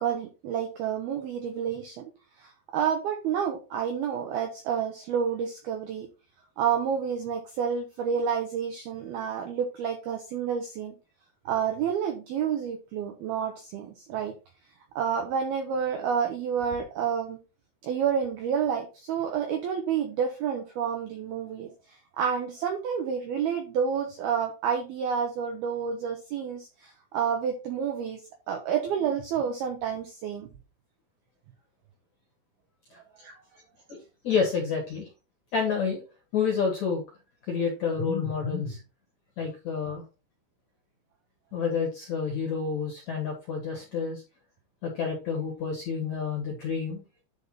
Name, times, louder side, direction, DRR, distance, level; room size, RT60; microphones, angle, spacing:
voice 1, 0.0-2.1 2.4-6.1 6.6-10.9 11.5-14.3 15.0-17.4 17.8-28.2 28.5-30.5 33.2-33.4, right 7 dB, 85° right, 4 dB, 2.2 m, -29 dB
voice 2, 34.2-35.1 35.5-36.0 36.3-37.0 37.5-38.8 39.4-40.0 41.5-44.2 44.8-47.0, left 5 dB, 55° left, -1 dB, 2.1 m, -29 dB
10.5 x 3.7 x 4.3 m, 0.30 s
omnidirectional pair, 5.9 m